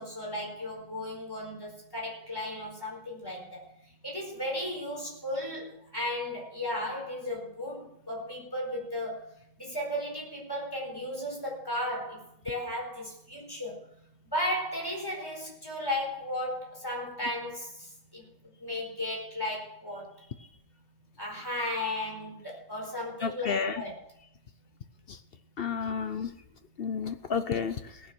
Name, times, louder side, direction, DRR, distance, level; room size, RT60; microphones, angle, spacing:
voice 1, 0.0-3.6 4.0-9.2 9.6-13.8 14.3-18.2 18.6-20.2 21.2-23.9, left 1 dB, 15° left, -3 dB, 4.4 m, -35 dB
voice 2, 23.2-23.8 25.1-25.2 25.6-26.3 26.8-28.0, left 6 dB, 50° left, 9 dB, 0.7 m, -31 dB
18.5 x 6.7 x 6.2 m, 0.73 s
omnidirectional pair, 1.6 m